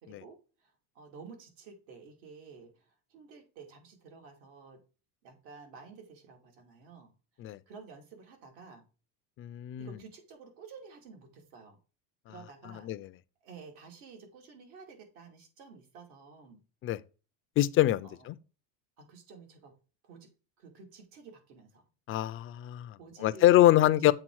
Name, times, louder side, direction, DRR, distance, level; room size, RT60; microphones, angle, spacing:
voice 1, 0.0-4.8 5.2-7.1 7.7-8.8 9.8-11.8 12.3-12.9 13.4-16.6 18.0-18.3 19.0-19.8 20.0-20.3 20.6-21.9 23.0-24.1, right 5 dB, 75° right, 2.6 m, -51 dB
voice 2, 9.4-9.9 12.8-13.1 16.8-17.0 17.6-18.4 22.1-24.1, left 14 dB, 35° left, 0.4 m, -25 dB
7.6 x 3.6 x 4.6 m
supercardioid pair, 130°, 40 cm